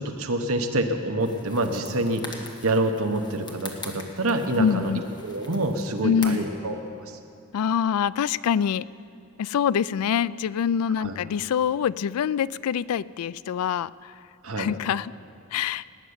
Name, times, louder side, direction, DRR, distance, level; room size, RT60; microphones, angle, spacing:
voice 1, 0.0-4.9 5.2-6.8 11.0-11.2 14.4-14.7, right 1 dB, 75° right, 5 dB, 1.2 m, -27 dB
sound 1, 1.2-6.6, left 3 dB, 20° left, 1.4 m, -43 dB
voice 2, 4.6-5.0 6.0-6.4 7.5-8.9 9.4-14.1 14.6-15.1 15.5-15.8, left 8 dB, 90° left, 19 dB, 0.3 m, -25 dB
18.5 x 6.9 x 9.5 m, 2.5 s
head